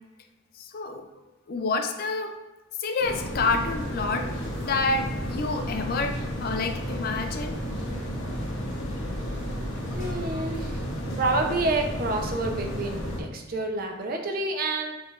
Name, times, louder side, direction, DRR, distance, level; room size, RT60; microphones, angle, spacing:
voice 1, 0.5-1.1 1.5-2.4 2.8-7.6 9.9-10.5 12.7-12.8, left 3 dB, 45° left, 6 dB, 0.4 m, -29 dB
sound 1, 3.0-13.2, equal, 65° left, 0.9 m, -32 dB
voice 2, 9.9-10.8 11.2-14.9, right 2 dB, 45° right, 3 dB, 0.5 m, -28 dB
4.7 x 3.2 x 2.4 m, 1.1 s
head